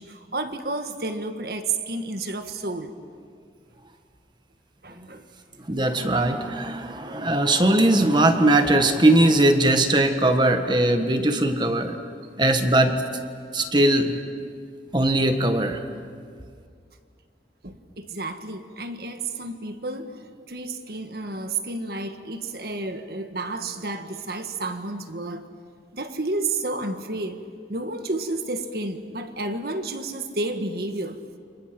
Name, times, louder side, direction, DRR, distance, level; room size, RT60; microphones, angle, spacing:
voice 1, 0.0-2.9 4.8-5.2 13.6-13.7 17.6-25.4 25.9-27.4 27.7-31.2, right 2 dB, 60° right, 7 dB, 1.6 m, -31 dB
voice 2, 5.7-12.0 12.4-13.0 13.5-14.2 14.9-15.8, right 1 dB, 25° right, 7 dB, 1.5 m, -20 dB
29.5 x 25.5 x 6.1 m, 2.1 s
head